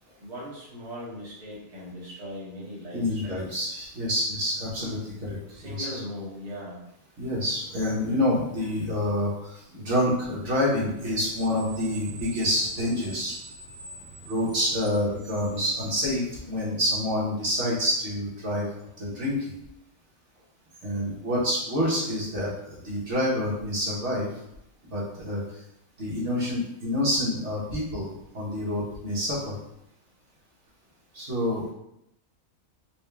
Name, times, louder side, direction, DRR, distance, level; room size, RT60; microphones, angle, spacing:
voice 1, 0.2-3.4 5.5-6.9, equal, 30° right, -7 dB, 1.0 m, -39 dB
voice 2, 2.9-5.9 7.2-13.3 14.2-18.7 19.0-19.5 20.8-22.5 22.8-24.3 24.9-25.4 26.0-29.5 31.1-31.7, left 1 dB, 55° right, -7 dB, 1.4 m, -27 dB
Screech, 10.9-16.7, right 2 dB, 70° right, 1.3 m, -46 dB
4.4 x 2.3 x 3.3 m, 0.81 s
omnidirectional pair, 1.6 m